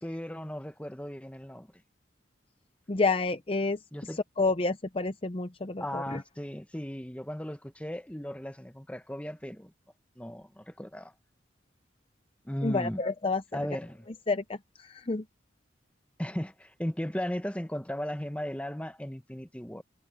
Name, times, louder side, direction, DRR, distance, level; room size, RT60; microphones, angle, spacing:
voice 1, 0.0-1.7 3.9-4.2 5.8-9.7 10.2-11.1 12.4-13.0 13.5-14.1 16.2-19.8, equal, 5° left, 1.1 m, -36 dB
voice 2, 2.9-3.8 4.4-6.2 12.6-13.4 14.3-15.2, left 3 dB, 30° left, 0.6 m, -29 dB
head